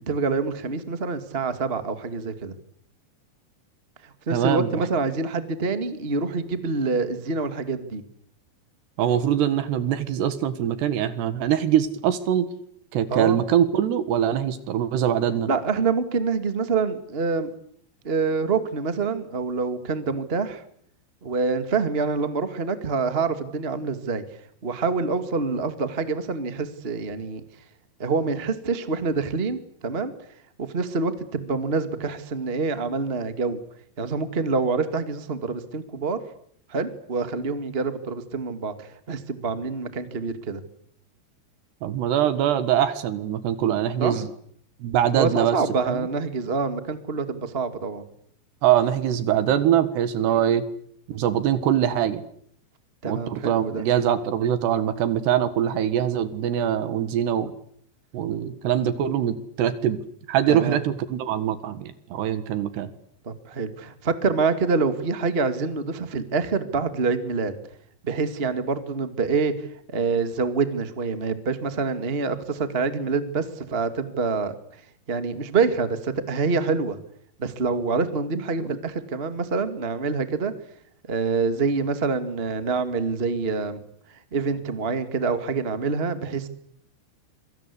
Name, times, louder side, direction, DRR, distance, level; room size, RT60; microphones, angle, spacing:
voice 1, 0.1-2.5 4.0-8.0 13.1-13.4 15.5-17.5 18.0-20.6 21.2-24.2 24.6-27.4 28.0-30.1 30.6-33.6 34.0-36.2 36.7-40.6 44.0-44.2 45.1-48.0 53.0-53.8 60.5-60.8 63.2-67.5 68.0-74.5 75.1-77.0 77.4-80.5 81.1-83.8 84.3-86.5, right 4 dB, 35° right, 10 dB, 0.9 m, -26 dB
voice 2, 4.3-4.7 9.0-12.5 12.9-15.5 41.8-44.3 44.8-45.6 45.8-46.0 48.6-50.7 51.1-52.2 53.1-57.5 58.1-60.0 60.3-62.9, right 10 dB, 70° right, 13 dB, 3.7 m, -23 dB
26.5 x 24.0 x 8.5 m, 0.66 s
omnidirectional pair, 5.2 m